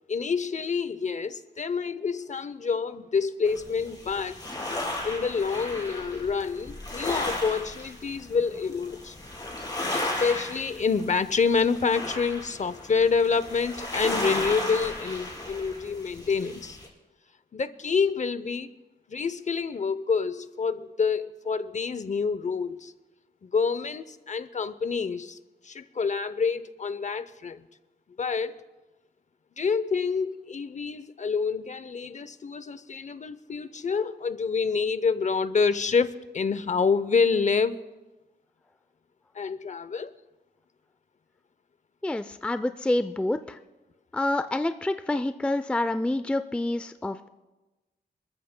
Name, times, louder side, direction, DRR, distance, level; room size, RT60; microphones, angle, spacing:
voice 1, 0.1-4.4 5.0-9.2 10.0-16.8 17.5-18.7 19.1-22.9 23.4-25.4 25.6-27.6 28.2-28.5 29.6-37.8 39.4-40.1, left 5 dB, 45° left, 14 dB, 0.6 m, -27 dB
sound 1, 3.4-16.9, left 1 dB, 20° left, 3.3 m, -35 dB
voice 2, 42.0-43.6 44.1-47.2, left 1 dB, 5° left, 10 dB, 0.4 m, -27 dB
28.5 x 13.5 x 2.2 m, 1.1 s
wide cardioid pair, 115°, 17 cm